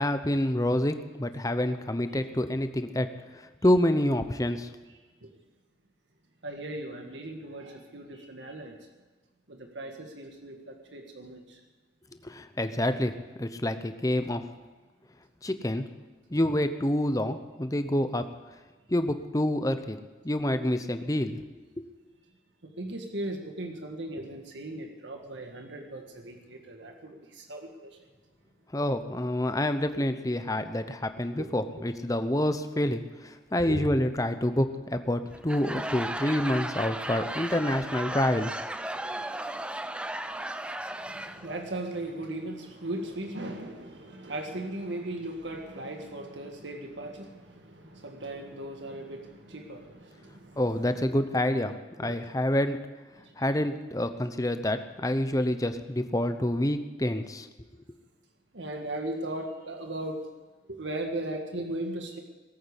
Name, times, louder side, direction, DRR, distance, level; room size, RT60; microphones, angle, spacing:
voice 1, 0.0-3.1 3.6-4.7 12.2-13.1 13.4-14.4 15.4-15.8 16.3-18.3 18.9-20.0 20.2-21.4 28.7-33.0 33.5-38.5 50.6-52.8 53.4-57.5, left 1 dB, 20° left, 9 dB, 0.8 m, -27 dB
voice 2, 6.4-8.8 9.5-11.6 22.6-28.0 31.4-31.5 33.6-33.9 41.0-50.9 52.0-52.4 53.2-53.5 58.5-60.2 60.7-62.2, right 1 dB, 85° right, 3 dB, 1.8 m, -38 dB
Laughter / Crowd, 35.3-41.6, right 1 dB, 5° right, 0.5 m, -35 dB
19.0 x 8.6 x 8.2 m, 1.3 s
head